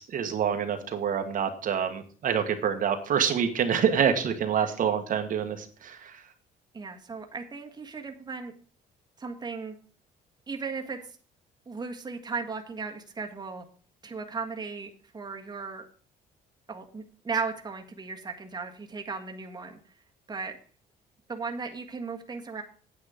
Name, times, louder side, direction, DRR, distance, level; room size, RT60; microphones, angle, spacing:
voice 1, 0.0-6.2, right 8 dB, 55° right, 5 dB, 1.5 m, -27 dB
voice 2, 6.7-8.5 9.2-9.7 10.5-11.1 11.7-13.6 14.0-15.9 16.7-19.8 20.3-20.6 21.3-22.6, right 4 dB, 25° right, 3 dB, 1.6 m, -36 dB
8.9 x 8.7 x 5.0 m, 0.41 s
cardioid pair, 110°, 17 cm